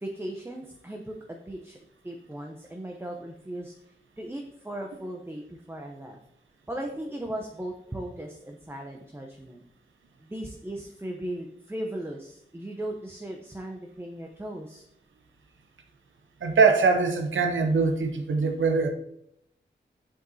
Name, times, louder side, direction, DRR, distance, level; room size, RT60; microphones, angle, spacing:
voice 1, 0.0-1.8 2.0-6.2 6.7-9.6 10.2-14.8, right 1 dB, 10° right, 1 dB, 0.7 m, -37 dB
voice 2, 16.4-18.9, right 4 dB, 85° right, 4 dB, 0.8 m, -22 dB
7.3 x 5.1 x 2.7 m, 0.75 s
cardioid pair, 50°, 20 cm